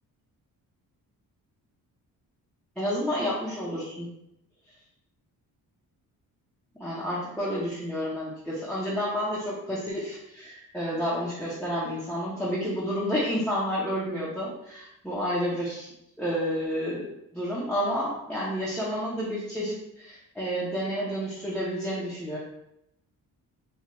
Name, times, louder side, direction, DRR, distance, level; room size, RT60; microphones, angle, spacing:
voice 1, 2.8-4.1 6.8-15.9 16.2-17.0 17.3-22.4, equal, 5° left, -9 dB, 0.6 m, -30 dB
4.5 x 2.3 x 2.9 m, 0.81 s
cardioid pair, 160°, 35 cm